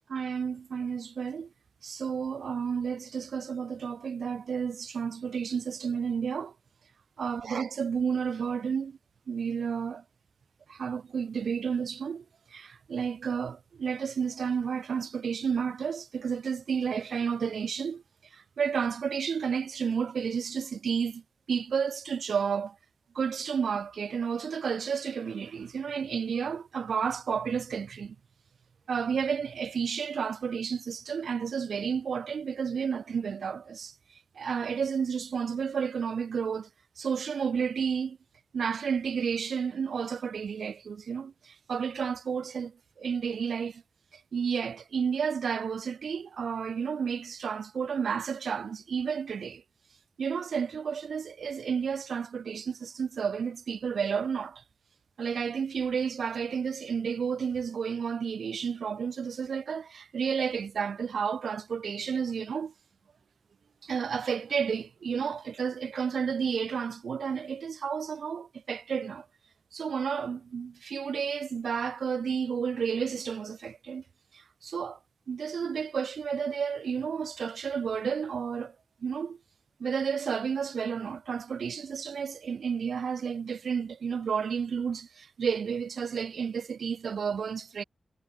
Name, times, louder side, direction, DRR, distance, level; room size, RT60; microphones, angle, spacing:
voice 1, 0.1-1.5 1.8-6.5 7.2-9.0 9.3-10.0 10.7-12.2 12.5-18.0 18.3-21.2 21.5-22.8 23.1-28.2 28.9-33.9 34.4-36.7 37.0-38.2 38.5-43.8 44.3-49.6 50.2-54.6 55.2-62.7 63.8-69.3 69.7-74.0 74.3-75.0 75.3-78.7 79.0-79.4 79.8-87.8, right 6 dB, 85° right, 2.2 m, -31 dB
wide cardioid pair, 145°, 0 cm